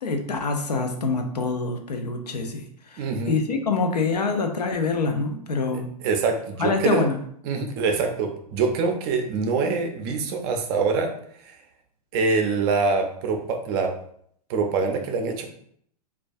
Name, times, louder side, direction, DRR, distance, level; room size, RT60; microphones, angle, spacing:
voice 1, 0.0-2.7 2.9-5.9 6.6-7.2, left 4 dB, 85° left, 5 dB, 0.5 m, -25 dB
voice 2, 3.0-3.4 5.7-7.0 7.4-11.1 11.4-11.6 12.1-13.9 14.5-15.4, right 4 dB, 40° right, 4 dB, 0.4 m, -25 dB
2.2 x 2.2 x 2.5 m, 0.64 s
hypercardioid pair, 105°, 20 cm